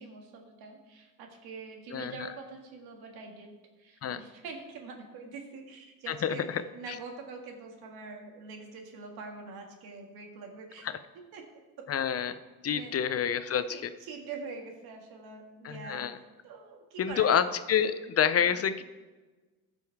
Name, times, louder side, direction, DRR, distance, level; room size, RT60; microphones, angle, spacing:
voice 1, 0.0-10.9 11.3-11.9 12.7-13.0 13.7-17.4 18.3-18.6, right 4 dB, 80° right, 3 dB, 1.8 m, -45 dB
voice 2, 6.1-6.6 6.9-7.0 11.9-12.4 12.6-13.6 15.6-16.2 17.0-18.8, left 8 dB, 40° left, 12 dB, 0.6 m, -28 dB
14.0 x 5.4 x 4.7 m, 1.2 s
cardioid pair, 95°, 37 cm